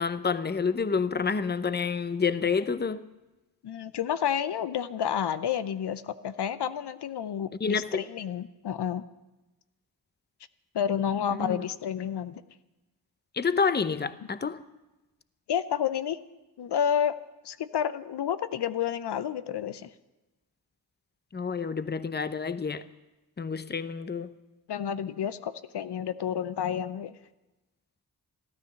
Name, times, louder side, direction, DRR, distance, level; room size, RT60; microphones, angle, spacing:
voice 1, 0.0-3.0 7.6-8.0 11.3-11.7 13.3-14.6 21.3-22.8 23.4-24.3, left 5 dB, 25° left, 0.7 m, -28 dB
voice 2, 3.6-9.0 10.7-12.4 15.5-16.2 16.6-17.2 17.4-19.9 24.7-27.1, left 9 dB, 80° left, 0.7 m, -30 dB
13.5 x 13.0 x 6.9 m
cardioid pair, 60°, 40 cm